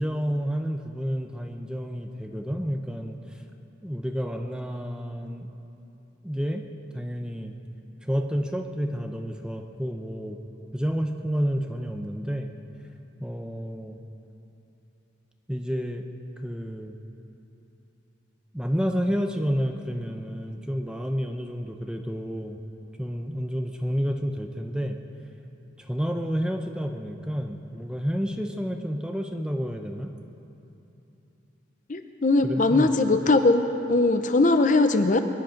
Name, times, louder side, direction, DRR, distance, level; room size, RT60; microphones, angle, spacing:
voice 1, 0.0-3.4 3.8-5.5 6.2-6.6 6.9-7.6 8.0-10.4 10.7-12.5 13.2-14.0 15.5-16.0 16.4-17.0 18.5-22.6 23.0-25.0 25.8-30.1 32.4-32.9, equal, 5° right, 4 dB, 0.7 m, -30 dB
voice 2, 31.9-35.2, left 2 dB, 40° left, 8 dB, 0.6 m, -20 dB
23.0 x 10.5 x 5.2 m, 2.9 s
head